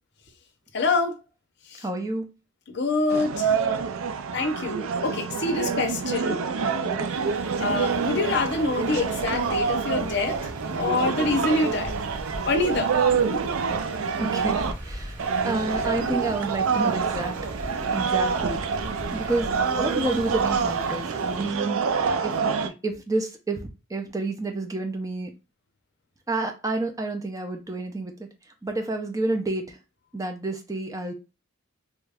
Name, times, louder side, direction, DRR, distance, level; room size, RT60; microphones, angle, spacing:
voice 1, 0.7-1.2 1.7-1.8 2.7-3.5 4.3-6.4 7.6-10.4 10.7-11.9 12.4-12.9 13.3-13.4, left 3 dB, 55° left, 0.6 m, -26 dB
voice 2, 1.8-2.2 6.6-7.1 14.2-17.4 17.9-18.6 19.1-19.5 19.8-21.8 22.2-23.6 23.9-25.3 26.3-28.3 28.6-29.8 30.1-31.1, right 2 dB, 15° right, 0.5 m, -29 dB
sound 1, 3.1-14.7 15.2-22.7, right 5 dB, 90° right, 0.5 m, -27 dB
Motor vehicle (road), 6.9-21.5, equal, 70° right, 1.3 m, -40 dB
3.0 x 2.3 x 3.4 m
head